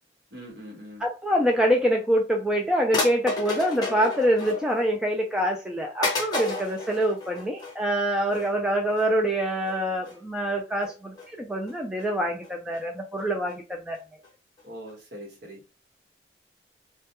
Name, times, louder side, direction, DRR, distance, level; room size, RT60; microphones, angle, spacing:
voice 1, 0.3-1.0 14.6-15.6, equal, 60° right, 1.1 m, -42 dB
voice 2, 1.0-14.0, equal, 5° right, 0.3 m, -25 dB
sound 1, 2.1-2.2 2.9-4.9 5.3-5.4 6.0-7.8 8.3-8.5 8.9-9.1 9.6-9.8 10.0-10.2 10.8-11.3 11.7-12.0 12.4-12.8 13.2-13.3 13.5-13.6 13.9-14.0 14.2-14.3 14.6-14.7 14.9-15.0, left 3 dB, 20° left, 0.7 m, -32 dB
2.2 x 2.1 x 2.8 m
head